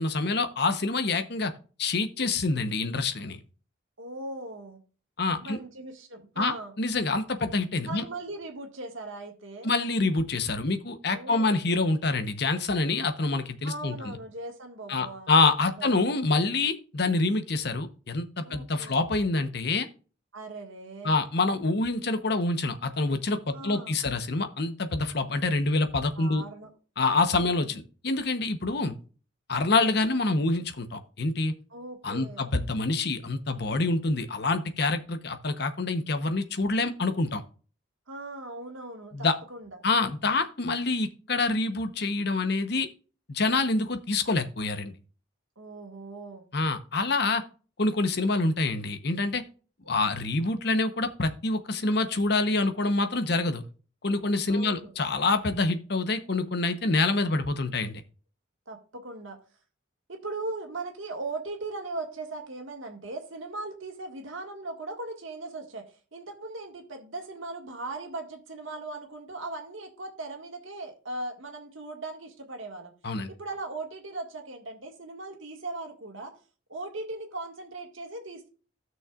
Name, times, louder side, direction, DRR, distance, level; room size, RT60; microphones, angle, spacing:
voice 1, 0.0-1.5 1.8-3.4 5.2-5.6 6.4-8.0 9.6-14.2 14.9-19.9 21.0-26.4 27.0-28.9 29.5-31.5 32.0-37.4 39.1-39.3 39.8-42.9 43.3-44.9 46.5-47.4 47.8-49.4 49.9-53.6 54.0-58.0 73.0-73.3, left 3 dB, 55° left, 9 dB, 0.9 m, -26 dB
voice 2, 4.0-4.8 5.4-6.7 7.8-9.7 11.1-11.6 13.6-15.3 15.7-16.0 18.4-19.0 20.3-21.2 23.5-24.0 26.1-26.7 27.3-27.8 31.7-32.5 38.1-39.8 45.6-46.4 49.8-50.0 54.5-54.9 58.7-59.4 60.1-72.9 73.3-76.3 76.7-78.5, right 2 dB, 80° right, 2 dB, 1.8 m, -39 dB
16.0 x 6.3 x 2.4 m, 0.37 s
head